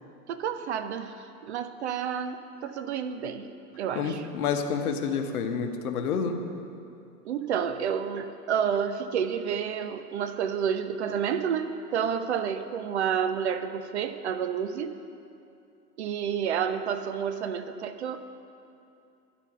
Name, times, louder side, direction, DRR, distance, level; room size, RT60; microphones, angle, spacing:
voice 1, 0.3-3.5 3.8-4.3 7.2-15.0 16.0-18.2, right 7 dB, 45° right, 10 dB, 0.4 m, -30 dB
voice 2, 3.9-6.4, left 6 dB, 65° left, 6 dB, 0.9 m, -29 dB
12.0 x 4.2 x 6.0 m, 2.6 s
hypercardioid pair, 115°, 48 cm